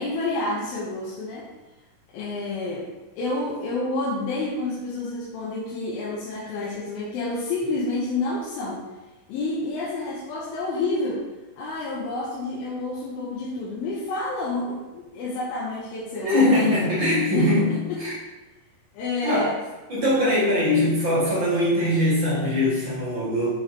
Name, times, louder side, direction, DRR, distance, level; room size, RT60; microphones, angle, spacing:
voice 1, 0.0-1.5 2.1-2.9 3.2-8.9 9.3-11.3 11.6-17.0 17.3-18.0 18.9-19.5, left 2 dB, 80° left, -5 dB, 2.6 m, -29 dB
voice 2, 16.2-18.2 19.2-19.5 19.9-23.5, left 1 dB, 50° right, -8 dB, 1.5 m, -21 dB
6.7 x 5.9 x 3.1 m, 1.1 s
omnidirectional pair, 4.4 m